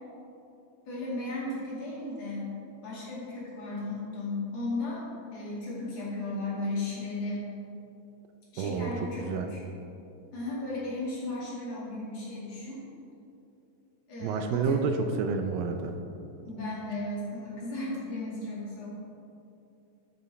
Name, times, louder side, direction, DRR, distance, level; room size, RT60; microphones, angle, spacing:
voice 1, 0.9-2.5 2.8-5.0 5.3-7.5 8.5-9.6 10.3-12.8 14.1-15.1 16.4-18.9, left 2 dB, 50° left, -8 dB, 3.2 m, -35 dB
voice 2, 8.6-8.9 9.2-9.5 14.2-15.9, right 5 dB, 80° right, 5 dB, 2.2 m, -29 dB
12.0 x 6.3 x 4.2 m, 2.7 s
omnidirectional pair, 4.1 m